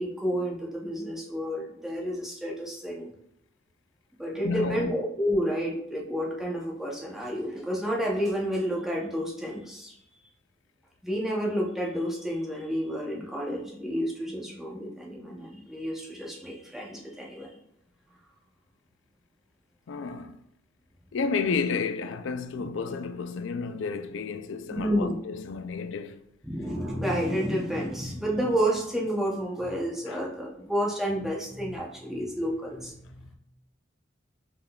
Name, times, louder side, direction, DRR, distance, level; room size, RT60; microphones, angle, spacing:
voice 1, 0.0-3.1 4.2-9.9 11.0-17.6 24.7-25.1 26.4-33.3, equal, ahead, 0.7 m, -30 dB
voice 2, 4.4-4.9 19.9-20.4 21.1-26.2 30.1-30.2, left 5 dB, 80° left, 0.4 m, -31 dB
5.4 x 3.6 x 2.3 m
head